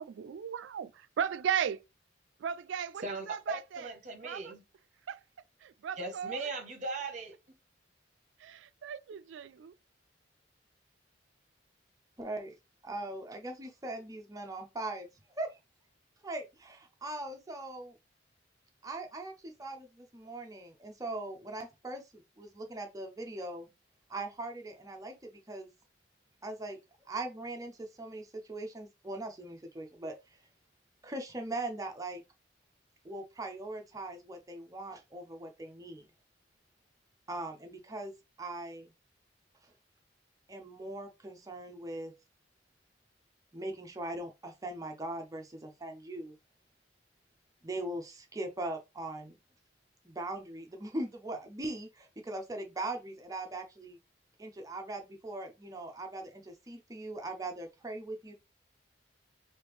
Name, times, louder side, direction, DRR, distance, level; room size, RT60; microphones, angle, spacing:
voice 1, 0.0-1.8 2.4-3.9 4.2-4.6 5.1-5.2 5.6-6.5 8.4-9.7, right 8 dB, 75° right, 0.3 m, -36 dB
voice 2, 3.0-4.6 6.0-7.6, right 3 dB, 40° right, 0.9 m, -39 dB
voice 3, 12.2-12.5 12.8-15.1 15.4-15.6 16.2-17.9 18.8-23.7 24.1-25.7 26.4-26.8 27.1-30.4 31.0-32.2 33.0-36.1 37.3-38.9 39.6-39.7 40.5-42.1 43.5-46.3 47.6-49.4 50.0-54.0 54.4-58.3, right 2 dB, 20° right, 0.5 m, -40 dB
3.2 x 2.6 x 3.4 m
head